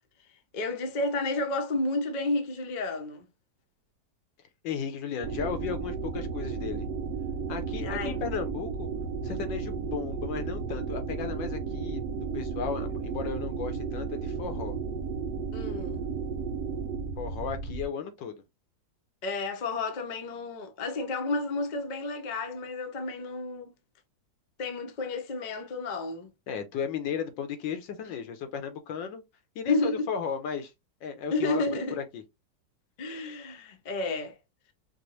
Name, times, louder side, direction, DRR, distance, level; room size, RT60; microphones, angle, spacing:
voice 1, 0.5-3.3 7.8-8.2 15.5-16.0 19.2-23.7 24.6-26.3 29.7-30.1 31.3-32.0 33.0-34.4, left 2 dB, 60° left, 0.4 m, -31 dB
voice 2, 4.6-6.9 7.5-8.9 9.2-12.0 12.3-14.7 17.2-18.4 26.5-29.2 29.5-30.7 31.0-31.6 32.0-32.2, left 7 dB, 85° left, 1.5 m, -35 dB
sound 1, 5.2-17.9, right 5 dB, 75° right, 1.2 m, -33 dB
5.1 x 2.0 x 2.9 m
omnidirectional pair, 2.0 m